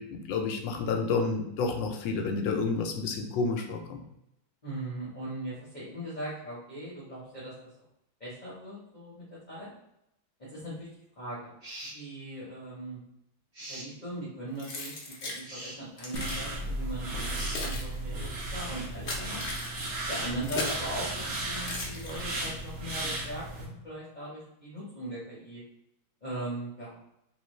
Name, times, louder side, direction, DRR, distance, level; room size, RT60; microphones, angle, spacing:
voice 1, 0.0-4.0, left 4 dB, 80° left, 4 dB, 1.3 m, -30 dB
voice 2, 4.6-7.5 8.2-9.7 10.5-10.9 11.2-11.5 11.9-13.0 13.7-19.4 20.1-25.6 26.2-27.0, right 1 dB, 30° left, -9 dB, 1.1 m, -39 dB
sound 1, 11.6-12.0 13.5-13.9 15.4-15.8 17.3-17.6, right 1 dB, 25° right, 1.5 m, -42 dB
Keys jangling, 14.6-15.4 16.0-16.5 17.2-20.9 21.6-22.5, left 2 dB, 55° left, 0.6 m, -37 dB
sound 2, 16.1-23.6, right 1 dB, 70° right, 1.8 m, -35 dB
3.8 x 3.1 x 3.1 m, 0.83 s
omnidirectional pair, 2.1 m